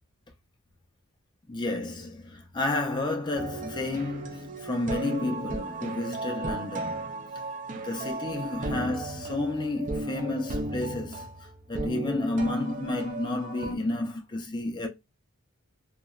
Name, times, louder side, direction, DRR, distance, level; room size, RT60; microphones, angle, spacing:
voice 1, 1.5-7.0 7.7-14.9, left 2 dB, 20° left, 0.4 m, -31 dB
sound 1, 3.3-13.7, right 2 dB, 40° right, 0.4 m, -35 dB
2.8 x 2.1 x 2.3 m
head